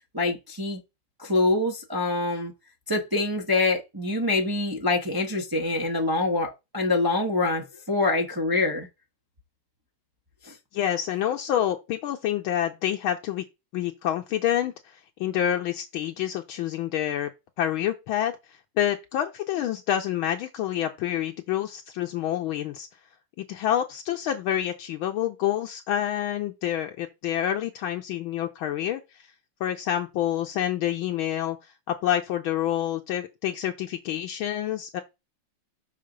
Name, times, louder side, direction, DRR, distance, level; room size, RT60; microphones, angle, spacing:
voice 1, 0.1-0.8 1.2-2.5 2.9-8.9 10.4-10.5, left 2 dB, 30° right, 0.3 m, -25 dB
voice 2, 10.7-13.4 13.7-14.7 15.2-17.3 17.6-18.3 18.8-22.9 23.4-29.0 29.6-31.6 31.9-35.0, left 11 dB, 75° left, 1.4 m, -27 dB
6.5 x 3.9 x 5.0 m
omnidirectional pair, 2.4 m